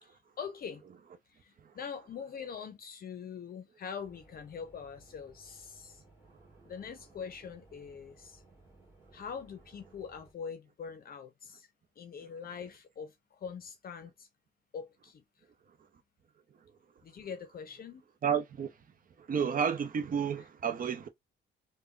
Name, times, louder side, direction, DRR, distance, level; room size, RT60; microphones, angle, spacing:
voice 1, 0.0-0.8 1.3-6.0 6.6-8.4 9.1-11.7 12.0-14.3 14.7-15.2 17.0-18.0, left 6 dB, 50° left, 0.6 m, -43 dB
sound 1, 4.0-10.3, right 2 dB, 15° right, 1.8 m, -60 dB
voice 2, 18.2-18.7 19.2-21.1, right 7 dB, 45° right, 0.6 m, -31 dB
3.4 x 2.2 x 2.3 m
cardioid pair, 90°, 20 cm